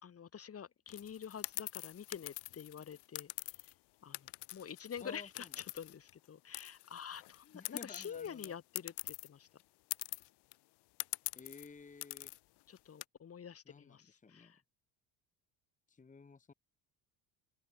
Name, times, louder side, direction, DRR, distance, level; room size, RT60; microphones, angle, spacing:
voice 1, 0.0-3.7 4.0-9.5 12.7-14.6, left 8 dB, 35° left, 2.9 m, -48 dB
sound 1, 0.9-3.7 4.1-6.3 6.5-9.3 9.6-9.7 9.9-10.5 11.0-11.7 12.0-12.4 12.8-13.0, left 20 dB, 75° left, 2.8 m, -44 dB
voice 2, 5.0-5.5 7.5-8.6 11.3-12.3 13.7-14.5 15.9-16.5, left 4 dB, 20° left, 1.8 m, -53 dB
open air
cardioid pair, 115°, 40 cm